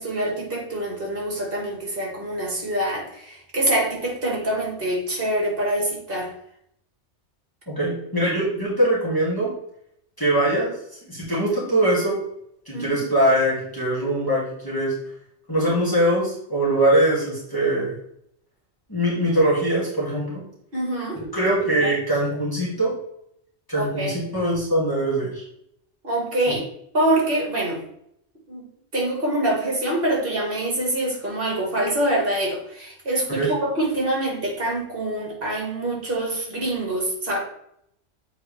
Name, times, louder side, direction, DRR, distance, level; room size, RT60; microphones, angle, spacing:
voice 1, 0.0-6.3 12.7-13.0 20.7-21.2 21.6-21.9 23.7-24.2 26.0-26.7 26.9-27.8 28.5-28.6 28.9-37.4, right 1 dB, 50° right, -1 dB, 2.2 m, -25 dB
voice 2, 7.7-9.5 10.2-10.7 11.0-12.2 12.7-14.9 15.5-17.9 18.9-20.4 21.3-22.9 23.7-25.4 33.3-33.5, right 1 dB, 20° left, -7 dB, 2.5 m, -22 dB
7.8 x 4.5 x 3.4 m, 0.73 s
omnidirectional pair, 1.2 m